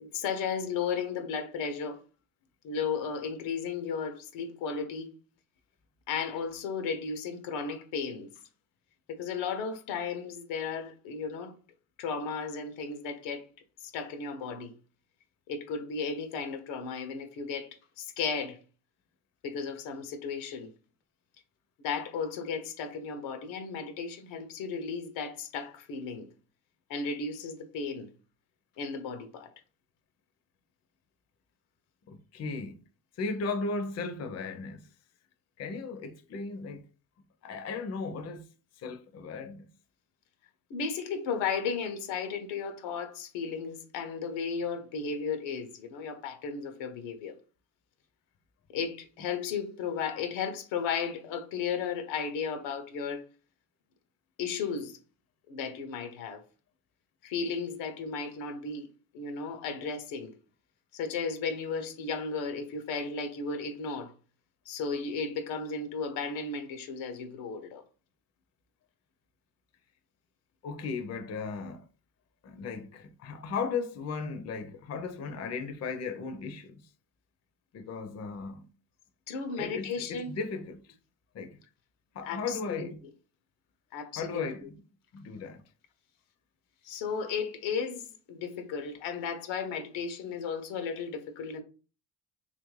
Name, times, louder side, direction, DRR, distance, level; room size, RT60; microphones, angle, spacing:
voice 1, 0.0-2.0 2.6-5.1 6.1-8.3 9.1-11.5 12.0-13.4 13.8-14.8 15.5-18.6 19.4-20.7 21.8-26.3 26.9-28.1 28.8-29.5 40.7-47.4 48.7-53.2 54.4-55.0 55.5-56.4 57.2-58.9 59.1-60.3 60.9-64.1 64.7-67.8 79.3-80.3 82.2-82.9 83.9-84.7 86.8-91.6, left 5 dB, 80° left, 0.7 m, -34 dB
voice 2, 32.1-32.7 33.2-34.9 35.6-36.8 37.4-38.4 38.8-39.6 70.6-71.8 72.4-76.7 77.7-78.7 79.6-80.8 81.3-81.6 82.1-83.0 84.2-84.6 85.1-85.6, left 4 dB, 35° left, 0.6 m, -36 dB
3.0 x 2.6 x 3.1 m
supercardioid pair, 75°, 45 cm